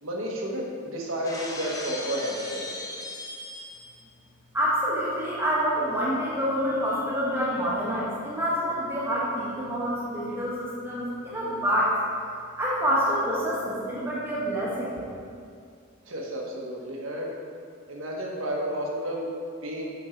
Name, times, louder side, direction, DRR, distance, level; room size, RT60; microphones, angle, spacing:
voice 1, 0.0-2.7 16.0-17.4 17.9-19.3 19.6-19.9, equal, 80° right, -2 dB, 1.3 m, -31 dB
Shatter, 1.2-4.0, left 2 dB, 15° left, 0.6 m, -37 dB
voice 2, 4.5-11.9 12.6-14.9, equal, 10° right, -8 dB, 1.4 m, -27 dB
7.3 x 5.3 x 4.4 m, 2.3 s
head